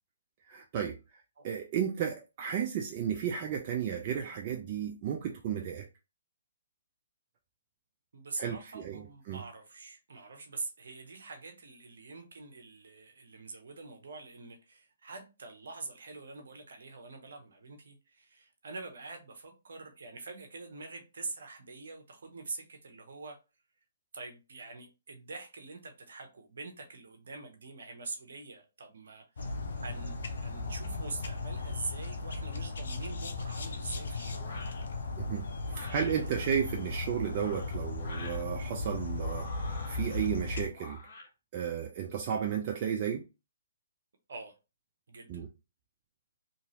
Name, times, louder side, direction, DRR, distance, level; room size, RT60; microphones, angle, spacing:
voice 1, 0.5-1.0 1.4-5.9 8.4-9.4 35.2-35.5 35.8-41.0 41.5-43.2 45.3-45.5, right 8 dB, 35° right, 0.4 m, -33 dB
voice 2, 8.1-23.4 24.1-34.4 35.7-36.6 44.3-44.5 45.1-45.4, right 3 dB, 65° right, 0.9 m, -45 dB
sound 1, 29.4-40.7, left 3 dB, 65° left, 0.6 m, -36 dB
sound 2, 34.4-34.8 35.7-36.2 37.2-38.4 39.1-40.3 40.7-41.3, left 3 dB, 45° left, 1.1 m, -47 dB
2.9 x 2.6 x 2.9 m
figure-of-eight pair, 135°, 0 cm